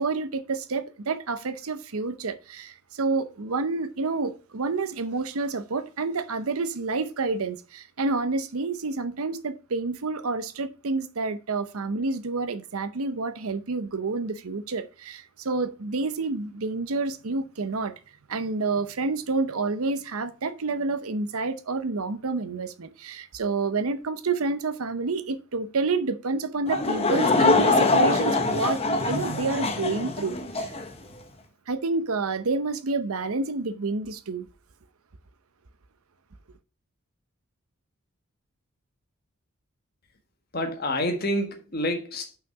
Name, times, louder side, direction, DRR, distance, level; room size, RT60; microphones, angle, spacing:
voice 1, 0.0-17.9 18.3-28.8 29.1-30.7 31.7-34.5, right 3 dB, 80° right, 0.7 m, -29 dB
Laughter / Crowd, 26.7-30.9, left 3 dB, 30° left, 0.9 m, -23 dB
voice 2, 40.5-42.4, left 1 dB, 45° left, 1.5 m, -28 dB
5.8 x 5.8 x 5.9 m
head